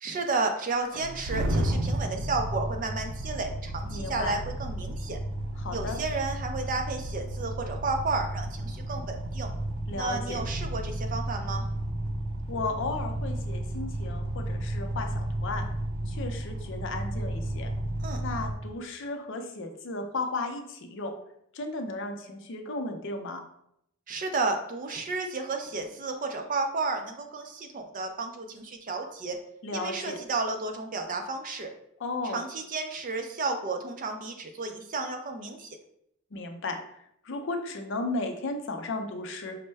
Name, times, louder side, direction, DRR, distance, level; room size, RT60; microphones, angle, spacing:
voice 1, 0.0-5.2 5.7-9.5 10.0-11.7 18.0-18.2 24.1-29.4 29.7-31.7 32.2-35.8, right 3 dB, 40° right, 5 dB, 0.4 m, -32 dB
sound 1, 0.9-18.5, right 1 dB, 80° right, 0.6 m, -33 dB
voice 2, 3.9-4.3 5.6-6.0 9.9-10.4 12.5-15.6 16.1-17.7 18.2-21.1 21.5-23.4 29.6-30.2 32.0-32.4 36.3-39.6, left 2 dB, 55° left, 5 dB, 0.5 m, -34 dB
5.2 x 2.1 x 3.3 m, 0.74 s
head